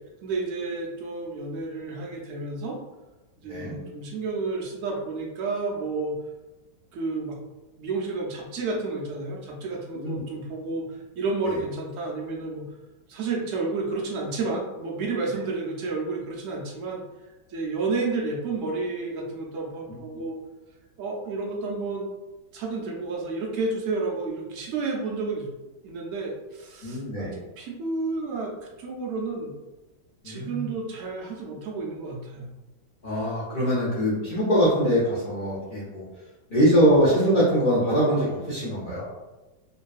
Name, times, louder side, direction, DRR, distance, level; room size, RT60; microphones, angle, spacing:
voice 1, 0.2-2.8 3.4-6.1 6.9-7.4 7.8-12.6 13.1-17.0 17.5-20.4 21.0-22.1 22.5-25.5 25.8-28.5 28.8-29.5 30.2-32.5, right 3 dB, 85° right, -2 dB, 0.6 m, -31 dB
voice 2, 3.4-3.7 9.9-10.2 11.5-11.6 19.9-20.2 26.8-27.4 30.2-30.6 33.0-36.0 36.5-39.0, equal, 85° left, -9 dB, 0.4 m, -23 dB
3.0 x 2.6 x 2.3 m, 1.1 s
omnidirectional pair, 2.0 m